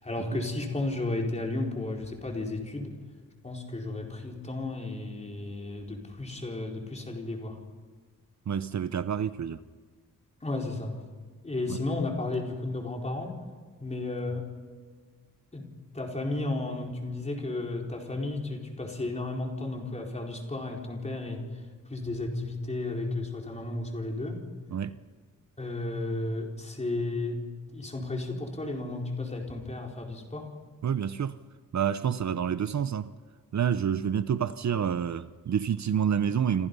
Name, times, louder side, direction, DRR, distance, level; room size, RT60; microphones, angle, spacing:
voice 1, 0.0-2.9 3.4-7.6 10.4-11.0 11.4-13.4 13.8-14.5 15.5-15.7 15.9-21.5 21.9-24.4 25.6-30.5, left 2 dB, 20° left, 4.5 m, -33 dB
voice 2, 8.5-9.6 11.7-11.8 24.7-25.0 30.8-31.4 31.7-33.1 33.5-36.7, right 8 dB, 55° right, 0.8 m, -28 dB
29.0 x 26.5 x 5.5 m
wide cardioid pair, 175°, 33 cm